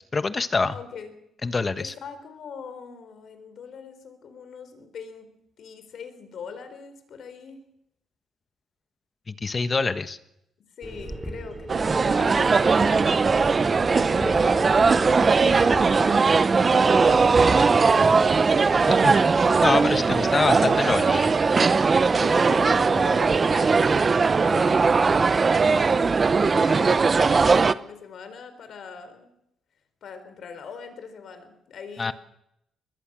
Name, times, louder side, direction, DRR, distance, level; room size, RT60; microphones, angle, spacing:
voice 1, 0.1-0.7 1.4-1.9 9.3-10.2 19.0-19.3 19.6-21.3 32.0-32.1, left 4 dB, 30° left, 12 dB, 1.3 m, -25 dB
voice 2, 0.7-1.1 1.8-5.3 5.6-7.6 10.8-18.7 20.2-20.8 21.9-24.8 25.2-26.1 26.5-29.3 30.0-32.1, left 6 dB, 65° left, 10 dB, 4.0 m, -41 dB
sound 1, 10.8-16.0, right 1 dB, 5° right, 5.1 m, -35 dB
sound 2, 11.7-27.7, right 4 dB, 35° right, 0.8 m, -19 dB
22.5 x 20.0 x 6.3 m, 0.80 s
cardioid pair, 90°, 0 cm